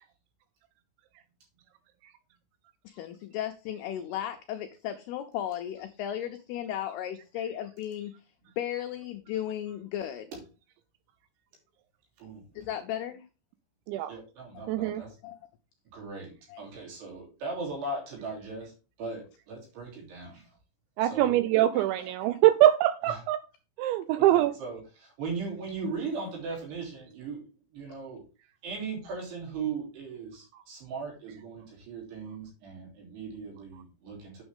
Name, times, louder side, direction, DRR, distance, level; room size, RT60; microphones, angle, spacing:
voice 1, 2.8-8.1 8.6-10.3 12.6-13.2 14.5-14.7 15.2-15.4 16.5-16.6 21.7-22.3 25.8-25.9, left 11 dB, 85° left, 6 dB, 2.3 m, -35 dB
voice 2, 14.1-15.1 15.9-18.7 19.0-20.4 21.0-21.4 23.1-23.2 24.1-27.4 27.7-28.2 28.6-34.4, right 4 dB, 60° right, 0 dB, 5.0 m, -38 dB
voice 3, 14.7-15.0 21.0-23.4 23.8-24.5, right 14 dB, 80° right, 12 dB, 2.8 m, -23 dB
8.9 x 7.0 x 3.6 m, 0.32 s
omnidirectional pair, 5.5 m